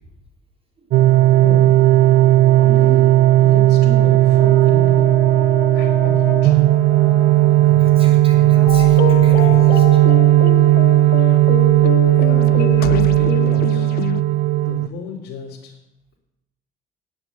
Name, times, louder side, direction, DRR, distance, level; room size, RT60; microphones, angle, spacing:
sound 1, 0.9-14.9, right 15 dB, 65° right, 0.4 m, -14 dB
voice 1, 1.4-1.7 2.6-3.1 3.4-5.2 5.7-6.6 12.3-13.9 14.5-15.7, left 3 dB, 90° left, -4 dB, 2.3 m, -32 dB
Brass instrument, 4.4-11.1, left 4 dB, 5° left, 1.5 m, -34 dB
voice 2, 7.6-10.0 11.2-11.4, left 1 dB, 35° right, 1 dB, 3.5 m, -35 dB
sound 2, 8.7-14.2, left 14 dB, 65° left, 0.5 m, -26 dB
9.5 x 8.0 x 9.0 m, 0.90 s
cardioid pair, 110°, 17 cm